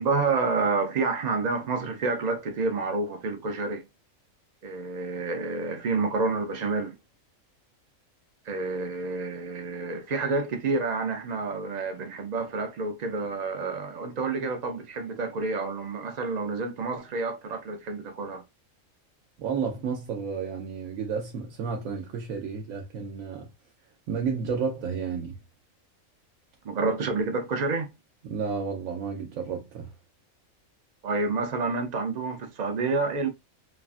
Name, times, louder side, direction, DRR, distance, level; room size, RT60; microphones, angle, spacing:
voice 1, 0.0-3.9 4.6-6.9 8.5-18.4 26.6-27.9 31.0-33.3, right 3 dB, 65° right, 0.4 m, -29 dB
voice 2, 19.4-23.5 24.1-25.4 28.2-29.9, right 6 dB, 85° right, 1.0 m, -31 dB
3.1 x 2.4 x 2.3 m
omnidirectional pair, 1.4 m